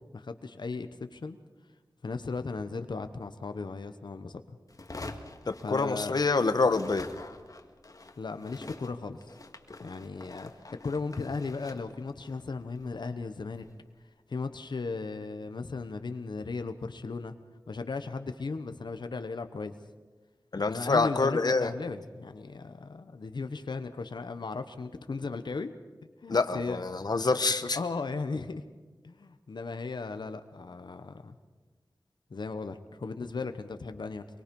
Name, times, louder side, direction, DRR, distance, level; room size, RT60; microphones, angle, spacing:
voice 1, 0.1-1.4 2.0-4.6 5.6-6.1 8.2-9.4 9.8-13.7 14.3-17.3 17.7-19.7 20.6-25.7 26.2-26.8 27.7-28.6 29.0-31.4 32.3-34.2, left 4 dB, 85° left, 8 dB, 1.0 m, -36 dB
sound 1, 4.7-6.3 6.6-13.8, left 2 dB, 50° left, 1.9 m, -47 dB
voice 2, 5.5-7.1 20.5-21.7 26.3-27.8, left 3 dB, 65° left, 9 dB, 1.1 m, -26 dB
24.0 x 23.5 x 5.4 m, 1.3 s
wide cardioid pair, 80°, 7 cm